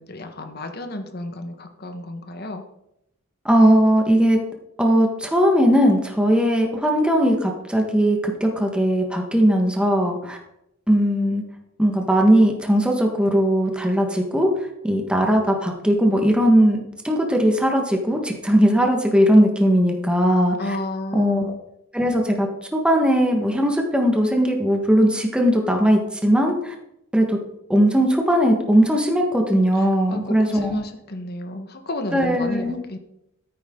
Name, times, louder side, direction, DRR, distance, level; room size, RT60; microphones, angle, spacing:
voice 1, 0.0-2.6 20.6-21.6 30.1-33.0, left 1 dB, 50° left, 6 dB, 1.4 m, -32 dB
voice 2, 3.4-4.4 4.8-10.4 10.9-11.4 11.8-14.5 14.8-20.8 21.1-21.5 21.9-26.7 27.1-27.4 27.7-30.8 32.1-32.8, equal, 5° right, 2 dB, 1.4 m, -19 dB
13.5 x 9.3 x 3.8 m, 0.82 s
head